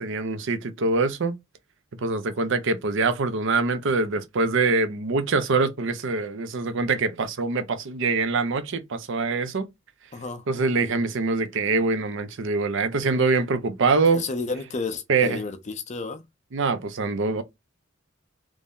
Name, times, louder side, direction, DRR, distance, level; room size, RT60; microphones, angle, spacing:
voice 1, 0.0-1.4 2.0-9.7 10.5-14.2 15.1-15.4 16.5-17.4, right 3 dB, 65° right, 0.6 m, -24 dB
voice 2, 10.1-10.4 14.1-16.2, left 4 dB, 35° left, 0.5 m, -31 dB
3.1 x 2.6 x 3.6 m
head